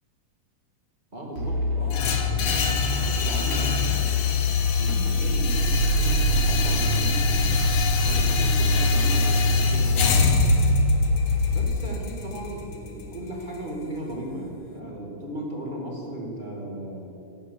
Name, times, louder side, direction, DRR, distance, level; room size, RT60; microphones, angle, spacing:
voice 1, 1.1-7.6 8.0-10.3 11.5-17.1, right 1 dB, 20° right, -2 dB, 1.7 m, -36 dB
sound 1, 1.4-11.7, left 2 dB, 75° right, 3.4 m, -24 dB
sound 2, 1.9-13.9, left 3 dB, 60° left, 1.5 m, -26 dB
13.0 x 11.0 x 7.5 m, 3.0 s
omnidirectional pair, 3.6 m